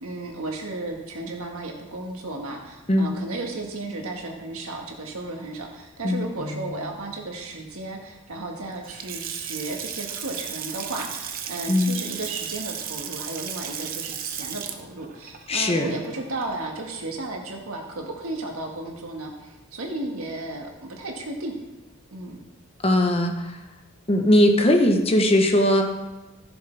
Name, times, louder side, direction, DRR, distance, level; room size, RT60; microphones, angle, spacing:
voice 1, 0.0-21.6 22.1-22.4, right 2 dB, 75° right, 1 dB, 1.6 m, -34 dB
Water tap faucet / Sink (filling or washing) / Splash splatter, 8.7-16.8, right 8 dB, 40° right, 0.8 m, -35 dB
voice 2, 15.5-15.9 22.8-23.4 24.1-25.8, left 1 dB, 25° left, 4 dB, 0.9 m, -19 dB
15.0 x 7.0 x 3.4 m, 1.0 s
head